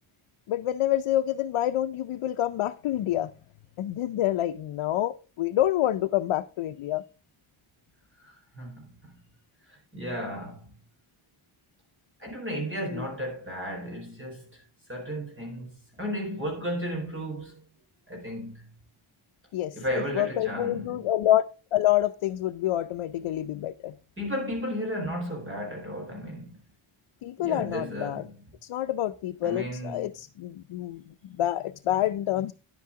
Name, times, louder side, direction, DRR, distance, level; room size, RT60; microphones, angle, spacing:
voice 1, 0.5-3.3 3.8-7.0 12.9-13.1 19.5-23.9 27.2-28.3 28.6-32.5, left 13 dB, 90° left, 0.6 m, -27 dB
voice 2, 8.2-8.9 9.7-10.7 12.2-14.6 14.9-17.5 18.1-18.7 19.7-21.1 24.2-26.6 27.4-28.4 29.4-30.1, equal, 25° right, 4.4 m, -34 dB
10.5 x 8.5 x 3.7 m
wide cardioid pair, 120°, 49 cm